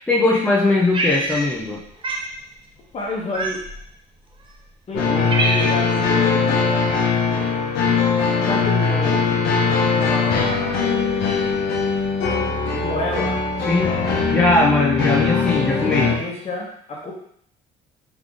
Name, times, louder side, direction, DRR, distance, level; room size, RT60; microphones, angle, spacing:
voice 1, 0.1-1.8 13.7-13.9 14.3-16.1, left 2 dB, 10° left, -5 dB, 0.8 m, -19 dB
Cat, 0.9-1.7 2.0-2.3 3.3-3.9 4.6-4.7 5.0-6.0, right 2 dB, 30° right, 0.8 m, -25 dB
voice 2, 2.9-3.6 4.9-6.9 8.4-9.5 9.9-11.0 12.7-13.4 15.3-17.1, left 2 dB, 40° left, -2 dB, 1.2 m, -30 dB
sound 1, 4.9-16.2, left 5 dB, 85° left, 0.9 m, -20 dB
3.6 x 3.4 x 3.8 m, 0.68 s
cardioid pair, 110°, 17 cm